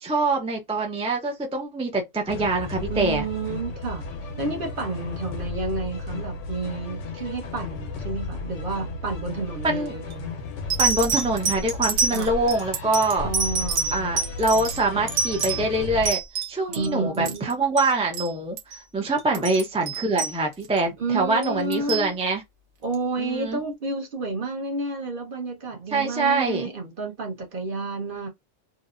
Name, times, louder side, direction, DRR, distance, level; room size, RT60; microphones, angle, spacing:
voice 1, 0.0-3.3 9.6-9.9 10.8-13.3 13.9-16.2 16.5-22.4 23.2-23.6 25.9-26.7, right 2 dB, 5° right, 0.5 m, -24 dB
sound 1, 2.3-16.1, left 3 dB, 80° left, 0.9 m, -34 dB
voice 2, 2.9-4.1 4.4-10.3 12.1-12.3 13.2-14.0 14.9-15.0 16.7-17.6 19.3-19.5 21.0-22.1 22.8-28.3, right 3 dB, 50° right, 0.9 m, -30 dB
sound 2, 9.9-10.1 10.7-16.9 17.1-17.5 17.8-17.9 18.1-18.3 18.6-18.8 19.2-20.8 21.4-22.1 22.9-23.0, right 4 dB, 70° right, 1.1 m, -27 dB
2.8 x 2.1 x 2.4 m
omnidirectional pair, 1.2 m